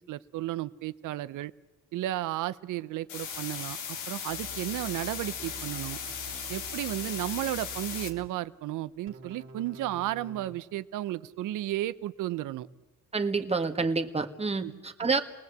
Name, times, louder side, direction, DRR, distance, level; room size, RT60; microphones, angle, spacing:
voice 1, 0.0-1.5 1.9-6.0 6.5-12.7 14.6-14.7, right 14 dB, 85° right, 15 dB, 0.8 m, -33 dB
sound 1, 3.1-8.1, left 7 dB, 85° left, 2.1 m, -37 dB
sound 2, 4.3-8.3 9.1-10.5, right 4 dB, 40° right, 2.4 m, -47 dB
voice 2, 13.1-15.2, right 4 dB, 20° right, 5 dB, 1.8 m, -28 dB
29.0 x 19.0 x 8.1 m, 1.2 s
cardioid pair, 90°, 30 cm